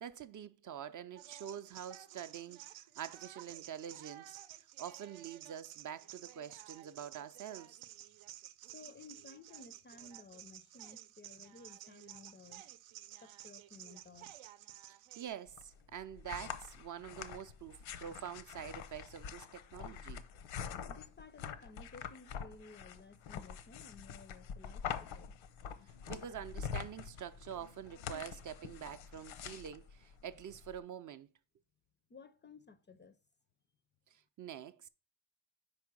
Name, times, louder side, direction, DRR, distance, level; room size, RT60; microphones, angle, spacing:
voice 1, 0.0-4.4 4.8-7.8 14.9-20.2 25.8-31.3 34.1-34.9, right 9 dB, 45° right, 0.4 m, -46 dB
sound 1, 1.1-15.3, right 13 dB, 90° right, 0.7 m, -53 dB
voice 2, 8.7-12.7 13.2-14.4 20.9-25.3 32.1-33.2, left 4 dB, 25° left, 0.4 m, -56 dB
sound 2, 15.5-30.8, left 8 dB, 85° left, 0.8 m, -45 dB
5.0 x 4.8 x 6.0 m
cardioid pair, 120°, 46 cm